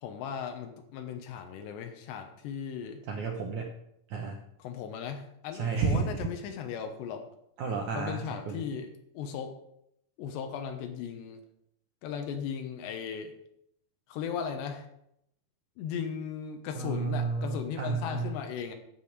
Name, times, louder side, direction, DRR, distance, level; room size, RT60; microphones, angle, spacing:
voice 1, 0.0-3.0 4.6-7.3 7.9-8.9 9.1-9.6 10.2-11.4 12.0-13.3 14.1-14.9 15.8-18.7, left 7 dB, 85° left, 6 dB, 3.3 m, -37 dB
voice 2, 3.1-3.7 4.1-4.4 5.5-6.3 7.6-8.6 16.7-18.4, right 4 dB, 75° right, 2 dB, 1.8 m, -31 dB
12.0 x 5.6 x 8.7 m, 0.77 s
omnidirectional pair, 4.9 m